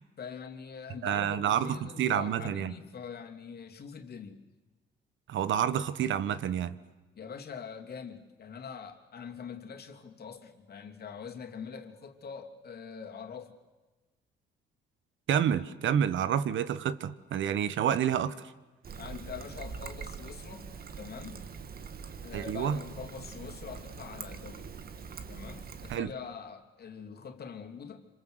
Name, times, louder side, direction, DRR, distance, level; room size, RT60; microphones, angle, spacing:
voice 1, 0.2-4.4 7.1-13.6 19.0-21.4 22.2-24.7 25.3-28.1, left 6 dB, 55° left, 5 dB, 3.0 m, -44 dB
voice 2, 1.0-2.7 5.3-6.8 15.3-18.3 22.3-22.8 25.9-26.1, right 9 dB, 75° right, 15 dB, 1.4 m, -28 dB
Trickle dribble, 18.8-26.0, right 6 dB, 50° right, 1.8 m, -43 dB
27.5 x 26.0 x 8.1 m, 1.2 s
cardioid pair, 90°, 20 cm